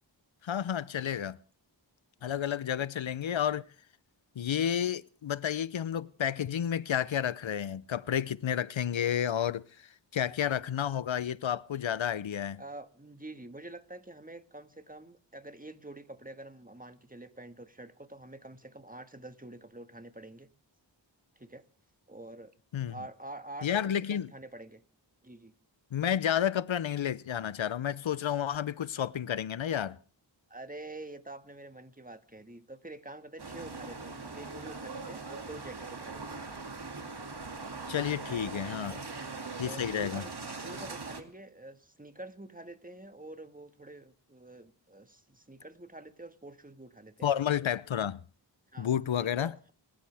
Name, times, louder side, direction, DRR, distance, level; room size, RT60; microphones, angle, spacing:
voice 1, 0.4-1.4 2.2-3.6 4.4-9.6 10.1-12.6 22.7-22.9 23.6-24.3 25.9-30.0 37.9-39.0 39.6-40.2 47.2-48.2 48.8-49.5, left 9 dB, 90° left, 0.7 m, -31 dB
voice 2, 12.6-20.5 21.3-21.6 22.1-22.5 22.9-24.8 25.2-25.5 30.5-36.5 38.8-39.0 39.6-47.3 48.7-49.7, right 2 dB, 20° right, 1.6 m, -47 dB
sound 1, 33.4-41.2, right 3 dB, 60° right, 2.5 m, -41 dB
27.5 x 13.0 x 3.5 m
wide cardioid pair, 55°, 45 cm